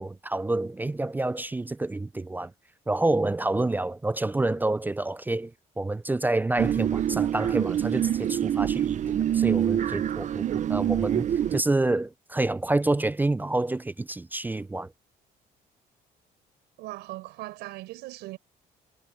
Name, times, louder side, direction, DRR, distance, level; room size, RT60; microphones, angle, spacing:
voice 1, 0.0-2.5 2.9-5.5 5.8-8.9 9.3-10.4 10.7-14.9, right 2 dB, 10° right, 0.4 m, -28 dB
sound 1, 6.6-11.6, right 10 dB, 45° right, 0.7 m, -26 dB
voice 2, 16.8-18.4, right 18 dB, 90° right, 4.8 m, -39 dB
cardioid pair, 110°, 17 cm